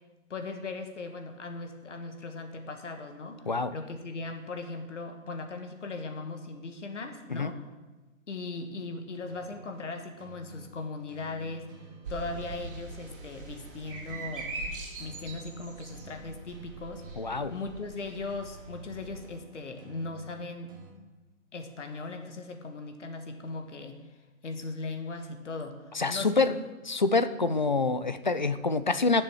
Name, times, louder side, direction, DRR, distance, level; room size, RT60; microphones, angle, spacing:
voice 1, 0.3-7.6 8.3-11.7 12.1-14.5 15.0-17.0 17.5-20.7 21.5-24.0 24.4-25.8 26.1-26.5, left 3 dB, 60° left, 5 dB, 1.5 m, -38 dB
sound 1, 9.3-20.9, right 2 dB, 15° right, 0.8 m, -51 dB
sound 2, 12.0-19.3, right 3 dB, 40° right, 2.8 m, -42 dB
voice 2, 17.2-17.5 25.9-26.6 26.9-29.2, left 3 dB, 35° left, 12 dB, 0.4 m, -26 dB
12.5 x 7.0 x 6.2 m, 1.2 s
figure-of-eight pair, 150°, 41 cm